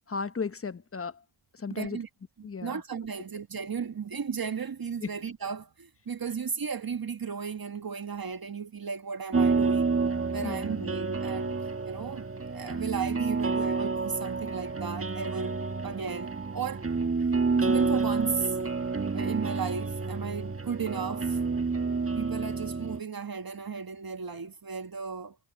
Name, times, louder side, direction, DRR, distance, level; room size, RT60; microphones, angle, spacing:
voice 1, 0.1-1.2 1.5-2.0 2.4-2.8 5.0-5.1 10.4-10.9, left 5 dB, 30° left, 1.0 m, -35 dB
voice 2, 1.7-2.1 2.4-10.0 10.3-11.6 11.9-15.6 15.8-16.8 17.6-18.6 19.1-21.4 22.1-25.4, right 6 dB, 45° right, 1.5 m, -35 dB
sound 1, 9.3-23.0, right 4 dB, 30° right, 1.6 m, -29 dB
cardioid pair, 55°, 48 cm